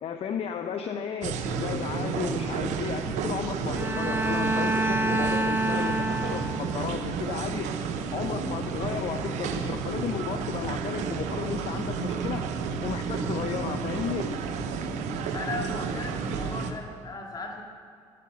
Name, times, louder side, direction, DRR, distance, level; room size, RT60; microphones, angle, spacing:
voice 1, 0.0-7.7 8.1-12.4 12.8-14.3, left 7 dB, 60° left, 7 dB, 0.7 m, -34 dB
sound 1, 1.2-16.7, right 5 dB, 80° right, 0.9 m, -31 dB
Bowed string instrument, 3.7-6.9, right 2 dB, 20° right, 0.9 m, -27 dB
voice 2, 15.3-17.6, left 2 dB, 35° left, 1 dB, 2.5 m, -36 dB
12.0 x 8.7 x 6.8 m, 2.3 s
supercardioid pair, 65°, 12 cm